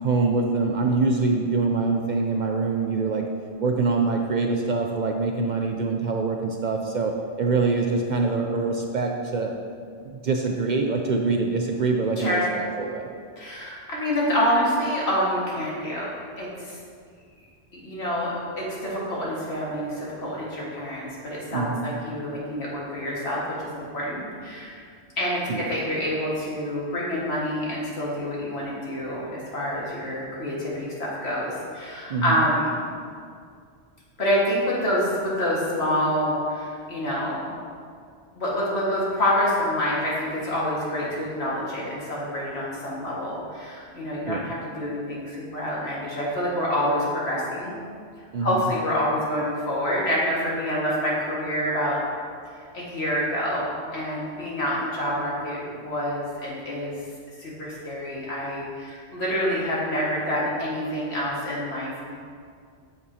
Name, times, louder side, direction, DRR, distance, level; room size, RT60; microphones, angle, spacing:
voice 1, 0.0-3.2 3.6-9.5 10.0-13.1 21.5-21.9 25.5-25.6 32.1-32.4 44.3-44.4 48.3-48.7, right 4 dB, 55° right, 2 dB, 0.5 m, -24 dB
voice 2, 12.2-12.5 13.4-16.1 16.4-16.8 17.7-24.7 25.2-32.8 34.2-37.6 38.4-47.7 48.4-52.0 52.6-57.0 57.4-62.1, equal, 70° left, -6 dB, 2.0 m, -27 dB
8.5 x 6.6 x 2.7 m, 2.1 s
omnidirectional pair, 1.1 m